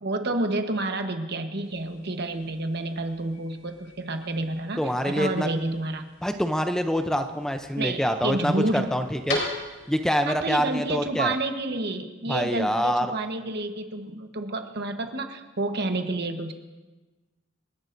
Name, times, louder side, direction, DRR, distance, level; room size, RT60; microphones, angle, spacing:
voice 1, 0.0-6.1 7.8-8.9 10.3-16.5, right 2 dB, 60° right, 6 dB, 1.1 m, -29 dB
sound 1, 1.6-10.1, left 2 dB, 75° left, 4.4 m, -39 dB
voice 2, 4.8-5.5 6.2-9.4 9.9-11.3 12.3-13.1, equal, 5° left, 7 dB, 0.5 m, -25 dB
28.0 x 11.0 x 2.6 m, 1.2 s
head